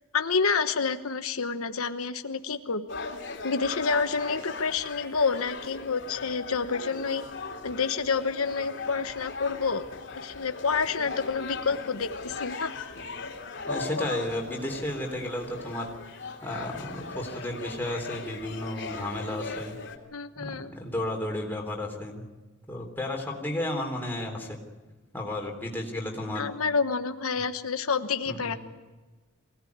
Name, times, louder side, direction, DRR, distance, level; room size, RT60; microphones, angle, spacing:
voice 1, 0.1-2.9 3.4-7.2 7.6-9.9 10.1-12.7 20.1-20.7 26.3-28.5, left 5 dB, 85° left, 8 dB, 1.1 m, -28 dB
sound 1, 2.9-20.0, left 3 dB, 55° left, 2.9 m, -38 dB
voice 2, 13.7-15.9 16.4-19.8 20.4-22.2 22.7-24.6 25.1-26.5 28.3-28.6, left 1 dB, 10° left, 0 dB, 3.5 m, -33 dB
24.0 x 17.5 x 9.6 m, 1.2 s
head